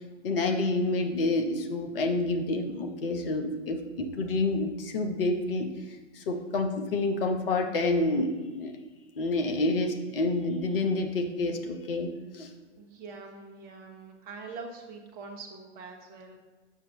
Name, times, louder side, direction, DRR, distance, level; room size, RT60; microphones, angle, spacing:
voice 1, 0.2-5.7 6.1-8.7 9.2-12.5, left 2 dB, 50° left, 4 dB, 0.9 m, -28 dB
voice 2, 12.8-16.4, right 4 dB, 25° right, 2 dB, 1.0 m, -44 dB
6.8 x 6.3 x 3.0 m, 1.3 s
figure-of-eight pair, 105°, 35 cm